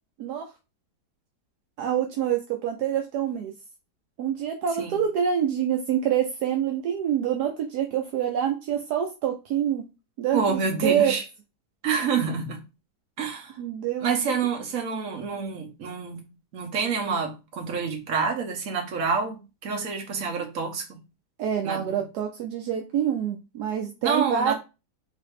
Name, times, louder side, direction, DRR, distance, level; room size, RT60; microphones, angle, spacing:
voice 1, 0.2-0.5 1.8-3.5 4.2-9.8 10.2-11.1 13.6-14.2 21.4-24.6, right 9 dB, 75° right, 1.2 m, -26 dB
voice 2, 10.3-11.2 11.8-12.6 13.2-13.6 14.0-16.3 16.5-21.0 21.6-22.0 24.0-24.6, right 5 dB, 55° right, 1.4 m, -28 dB
4.0 x 2.8 x 4.7 m
omnidirectional pair, 1.8 m